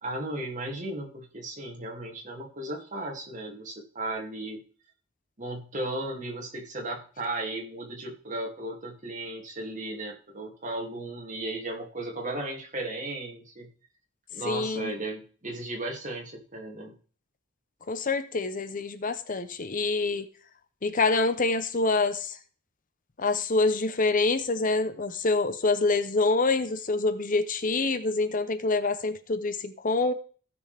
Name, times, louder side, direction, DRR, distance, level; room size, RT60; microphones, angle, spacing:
voice 1, 0.0-4.6 5.4-13.7 14.3-16.9, right 1 dB, 40° right, 1 dB, 2.6 m, -35 dB
voice 2, 14.4-14.9 17.9-20.3 20.8-22.4 23.2-30.1, left 3 dB, 40° left, 11 dB, 0.8 m, -26 dB
16.5 x 6.2 x 3.4 m, 0.41 s
head